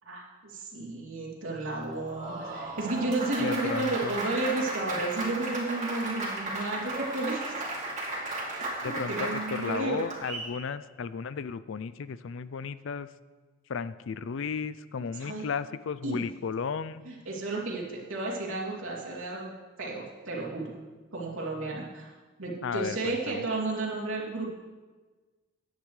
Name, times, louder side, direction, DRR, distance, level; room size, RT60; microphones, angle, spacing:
voice 1, 0.0-7.5 8.8-10.0 15.2-15.5 16.0-16.2 17.0-19.5 19.8-20.7 21.1-24.5, right 2 dB, 70° right, -4 dB, 2.9 m, -32 dB
Applause, 1.8-10.5, right 2 dB, 35° right, 2.6 m, -35 dB
voice 2, 3.4-4.2 8.8-13.1 13.7-17.0 22.6-23.4, left 5 dB, 65° left, 15 dB, 0.4 m, -34 dB
16.0 x 10.5 x 3.3 m, 1.3 s
head